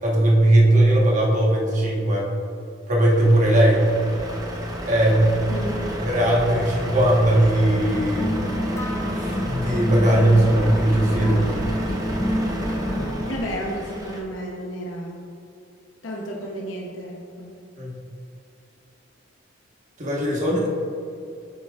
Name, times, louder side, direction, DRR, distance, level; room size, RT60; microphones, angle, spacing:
voice 1, 0.0-2.3 2.9-3.9 4.9-5.3 6.0-8.3 9.1-11.4 17.8-17.9 20.0-20.7, right 1 dB, 40° right, -3 dB, 1.3 m, -19 dB
Truck, 3.0-14.2, equal, 20° right, 0.8 m, -31 dB
voice 2, 5.5-5.9 13.3-15.2 16.0-17.6, equal, 90° left, -2 dB, 0.9 m, -32 dB
sound 1, 7.7-13.3, equal, 15° left, 0.6 m, -28 dB
8.7 x 6.9 x 2.4 m, 2.6 s
head